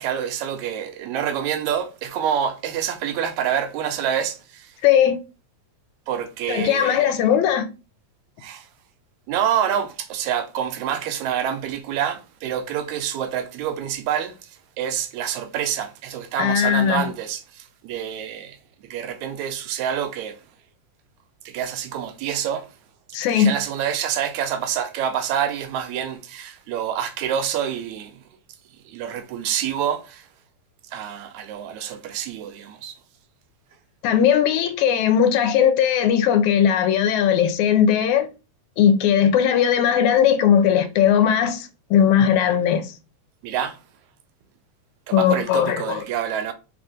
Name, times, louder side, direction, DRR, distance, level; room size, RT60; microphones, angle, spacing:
voice 1, 0.0-4.8 6.1-7.1 8.4-8.7 9.3-18.6 18.8-20.4 21.5-22.7 23.1-28.2 28.9-30.3 30.9-33.0 43.4-43.8 45.1-46.5, right 9 dB, 80° right, 1.9 m, -27 dB
voice 2, 4.8-5.2 6.5-7.7 16.4-17.1 23.1-23.5 34.0-38.3 38.8-42.9 45.1-46.0, left 9 dB, 80° left, 2.0 m, -18 dB
4.8 x 2.5 x 3.7 m
omnidirectional pair, 3.4 m